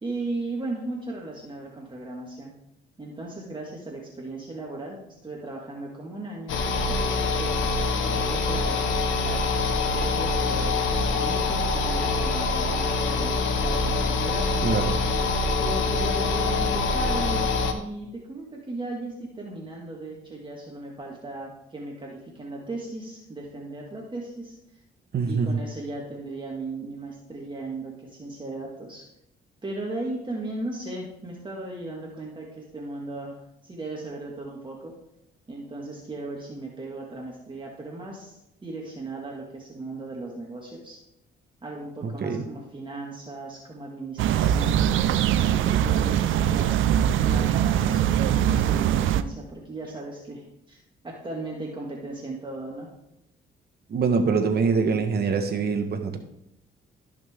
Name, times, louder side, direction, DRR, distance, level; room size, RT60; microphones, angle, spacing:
voice 1, 0.0-2.5 3.0-6.6 6.9-9.5 9.9-14.7 15.6-24.6 25.3-29.1 29.6-33.4 33.6-35.0 35.5-41.0 41.6-44.9 45.4-52.9, right 2 dB, 25° right, -2 dB, 2.0 m, -37 dB
sound 1, 6.5-17.7, left 3 dB, 75° left, 1.2 m, -25 dB
voice 2, 14.6-14.9 25.1-25.6 42.0-42.4 53.9-56.2, right 5 dB, 55° right, 6 dB, 1.4 m, -24 dB
sound 2, 44.2-49.2, right 10 dB, 80° right, 0.6 m, -22 dB
14.5 x 6.0 x 3.6 m, 0.83 s
cardioid pair, 90°, 20 cm